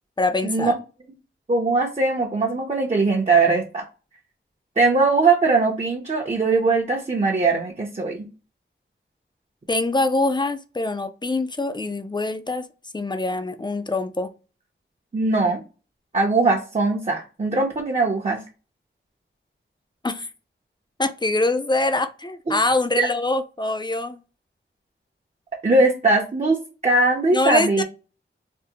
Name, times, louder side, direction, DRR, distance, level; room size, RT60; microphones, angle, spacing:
voice 1, 0.2-0.7 9.7-12.7 12.9-14.3 20.0-20.3 21.0-24.2 27.3-27.8, left 2 dB, 20° left, 0.4 m, -24 dB
voice 2, 1.5-3.8 4.8-8.3 15.1-15.6 16.1-18.4 22.5-22.6 23.0-23.1 25.6-26.6 26.8-27.8, right 3 dB, 35° right, 0.6 m, -20 dB
3.4 x 2.0 x 2.7 m
wide cardioid pair, 65°, 21 cm